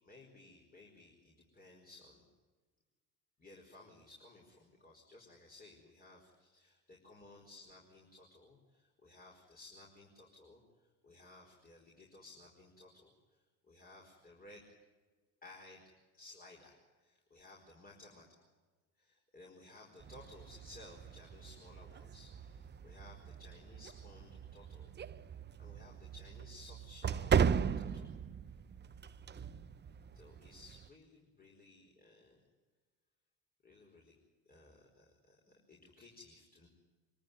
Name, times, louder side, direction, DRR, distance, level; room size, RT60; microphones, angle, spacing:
voice 1, 0.0-2.3 3.4-13.4 13.6-14.6 15.4-15.8 16.1-18.2 19.0-24.9 25.6-27.4 27.8-28.1 30.1-32.4 33.6-34.1 34.4-36.7, left 2 dB, 25° left, -1 dB, 4.9 m, -58 dB
sound 1, 20.0-30.9, right 7 dB, 30° right, 0.7 m, -38 dB
24.5 x 14.0 x 9.4 m, 1.3 s
supercardioid pair, 85°, 37 cm